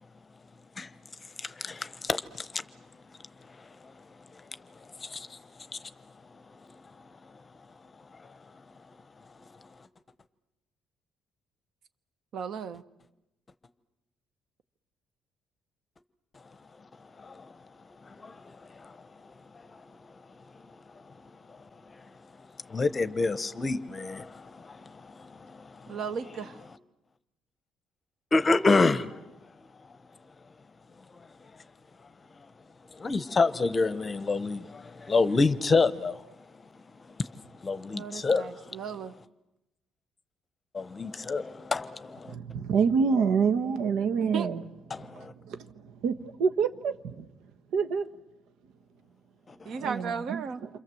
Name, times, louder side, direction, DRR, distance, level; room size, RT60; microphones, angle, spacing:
voice 1, 1.4-2.6 3.8-3.9 5.0-5.4 5.7-5.9 17.2-17.5 18.0-18.9 21.5-21.6 22.7-26.0 28.3-29.1 33.0-36.2 37.2-38.8 40.7-42.3 44.9-45.3 49.6-49.8, left 3 dB, 20° left, 0.9 m, -28 dB
voice 2, 12.3-12.8 25.9-26.6 37.9-39.1 44.2-44.5 49.6-50.6, right 6 dB, 50° right, 1.1 m, -35 dB
voice 3, 42.3-44.7 46.0-47.2 47.7-48.1 49.8-50.5, right 6 dB, 80° right, 1.4 m, -26 dB
28.5 x 26.0 x 7.8 m
cardioid pair, 175°, 0 cm